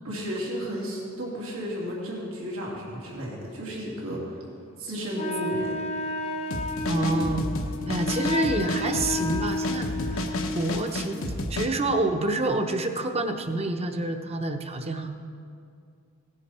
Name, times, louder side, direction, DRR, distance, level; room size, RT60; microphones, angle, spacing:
voice 1, 0.0-4.4 4.8-5.8, equal, 85° right, -4 dB, 2.8 m, -33 dB
Wind instrument woodwind instrument, 5.1-10.7, left 2 dB, 30° left, 0.7 m, -32 dB
sound 1, 6.5-11.7, left 1 dB, 85° left, 1.0 m, -31 dB
voice 2, 6.9-7.5 7.9-10.3 10.5-15.1, right 2 dB, 30° right, 5 dB, 0.8 m, -28 dB
17.0 x 10.0 x 4.3 m, 2.3 s
head